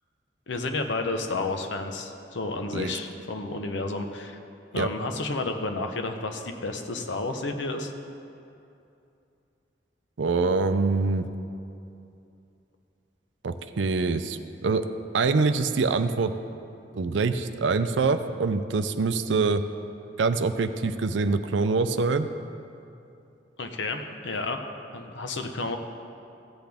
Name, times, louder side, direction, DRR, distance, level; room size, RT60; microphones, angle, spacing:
voice 1, 0.5-4.4 4.7-7.9 23.6-24.6 24.9-25.8, left 3 dB, 80° left, 5 dB, 0.8 m, -31 dB
voice 2, 10.2-11.3 13.4-14.8 15.1-16.3 16.9-19.6 20.2-22.3, right 4 dB, 80° right, 10 dB, 0.5 m, -25 dB
15.5 x 8.0 x 3.5 m, 2.7 s
head